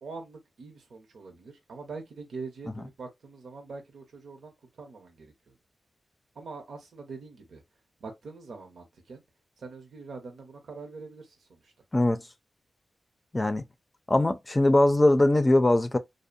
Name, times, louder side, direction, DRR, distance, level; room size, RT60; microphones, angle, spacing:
voice 1, 0.0-5.6 6.3-7.6 8.0-9.2 9.6-11.7, right 4 dB, 80° right, 0.9 m, -43 dB
voice 2, 13.3-13.6 14.1-16.0, left 1 dB, 25° left, 0.5 m, -21 dB
2.7 x 2.1 x 2.5 m
cardioid pair, 65°, 0 cm